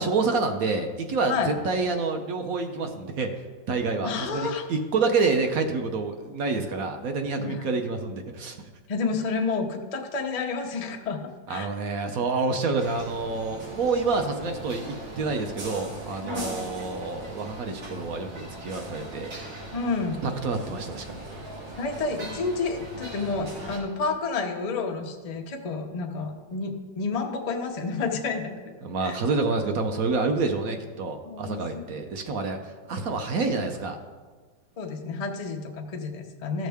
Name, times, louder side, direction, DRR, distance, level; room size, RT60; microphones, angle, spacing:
voice 1, 0.0-3.3 3.7-8.6 11.5-18.3 18.6-19.3 20.2-21.3 28.8-32.6 32.9-34.0, right 4 dB, 60° right, 5 dB, 1.0 m, -28 dB
voice 2, 4.0-4.7 7.4-7.6 8.9-11.2 11.5-11.7 16.2-16.7 19.7-20.2 21.8-28.7 29.0-29.2 31.2-31.9 34.8-36.7, left 4 dB, 75° left, 3 dB, 0.3 m, -30 dB
sound 1, 12.8-23.8, right 1 dB, 85° right, 3.0 m, -39 dB
14.5 x 6.4 x 3.5 m, 1.4 s
omnidirectional pair, 2.0 m